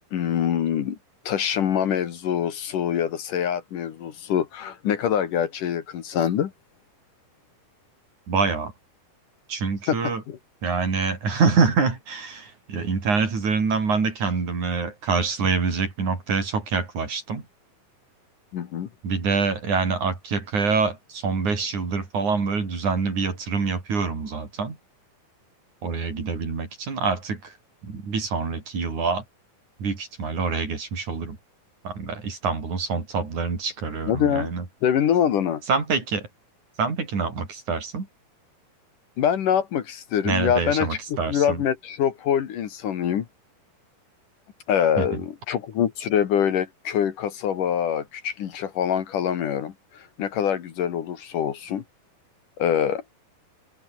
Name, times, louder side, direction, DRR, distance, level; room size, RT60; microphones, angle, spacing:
voice 1, 0.1-1.0 1.3-6.5 9.9-10.0 10.3-10.4 18.5-18.9 34.1-34.5 34.8-35.6 39.2-41.0 41.3-43.3 44.7-49.7 50.2-51.8 52.6-53.0, left 9 dB, 65° left, 3.2 m, -24 dB
voice 2, 8.3-8.7 9.5-10.2 10.6-17.4 19.0-24.8 25.8-27.5 27.8-29.2 29.8-31.4 31.8-34.6 35.7-36.3 36.8-38.1 40.2-41.6 45.0-45.2, right 4 dB, 55° right, 6.2 m, -25 dB
open air
omnidirectional pair, 4.2 m